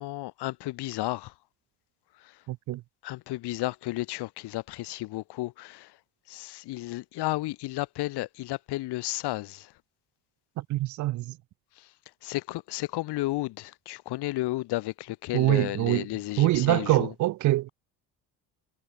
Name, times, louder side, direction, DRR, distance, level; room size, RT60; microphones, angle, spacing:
voice 1, 0.0-1.3 2.2-2.4 3.0-6.0 6.3-9.7 11.8-11.9 12.2-17.1, left 18 dB, 75° left, 2.4 m, -33 dB
voice 2, 2.5-2.8 10.6-11.4 15.3-16.1 16.4-17.7, right 16 dB, 50° right, 0.5 m, -24 dB
cardioid pair, 150°, 40 cm